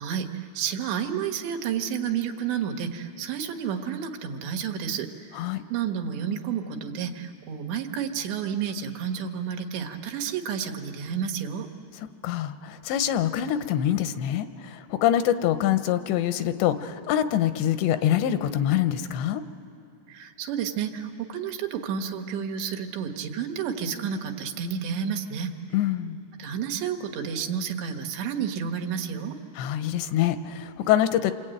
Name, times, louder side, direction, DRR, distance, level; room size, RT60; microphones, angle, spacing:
voice 1, 0.0-11.7 20.1-25.5 26.4-29.4, right 7 dB, 85° right, 4 dB, 3.6 m, -31 dB
voice 2, 12.2-19.4 25.7-26.2 29.6-31.3, left 11 dB, 85° left, 10 dB, 3.1 m, -25 dB
28.5 x 23.0 x 9.0 m, 2.7 s
omnidirectional pair, 4.9 m